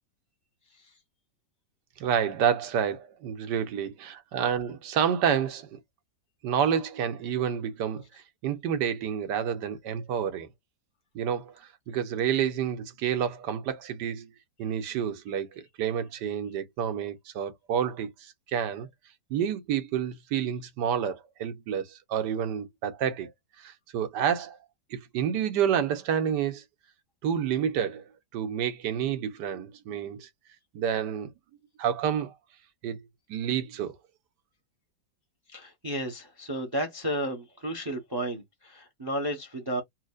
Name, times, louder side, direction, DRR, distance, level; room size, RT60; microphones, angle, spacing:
voice 1, 2.0-5.8 6.4-8.0 8.4-10.5 11.1-11.5 11.9-14.3 14.6-18.9 19.3-23.3 23.6-24.6 24.9-26.6 27.2-28.0 28.3-30.3 30.7-31.3 31.8-32.3 32.8-33.0 33.3-33.9, right 8 dB, 70° right, 1.4 m, -29 dB
voice 2, 35.5-39.8, right 1 dB, 20° right, 0.7 m, -32 dB
4.4 x 2.4 x 2.4 m
omnidirectional pair, 2.0 m